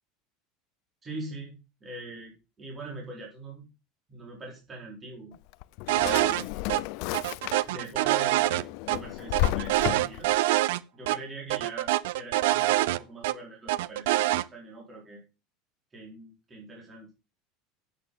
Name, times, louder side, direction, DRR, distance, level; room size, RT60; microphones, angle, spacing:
voice 1, 1.0-3.7 4.1-5.3 5.9-6.5 7.7-10.3 10.9-11.9 12.1-15.2 15.9-17.1, right 2 dB, 20° right, -2 dB, 4.5 m, -42 dB
Drawer open or close, 5.3-7.9 8.3-10.4, left 18 dB, 60° left, 0.5 m, -32 dB
sound 1, 5.9-6.4 6.7-6.8 7.1-9.0 9.3-10.8 11.1-11.2 11.5-13.3 13.7-14.4, right 16 dB, 80° right, 0.6 m, -25 dB
8.6 x 8.6 x 5.6 m, 0.29 s
cardioid pair, 160°, 0 cm